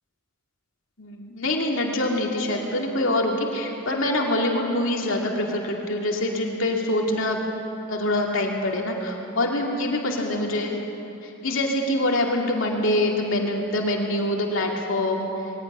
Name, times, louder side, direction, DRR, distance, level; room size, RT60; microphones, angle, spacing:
voice 1, 1.0-7.4 7.9-10.7 11.2-15.3, left 1 dB, 70° left, 0 dB, 2.6 m, -25 dB
21.5 x 16.0 x 9.9 m, 2.9 s
head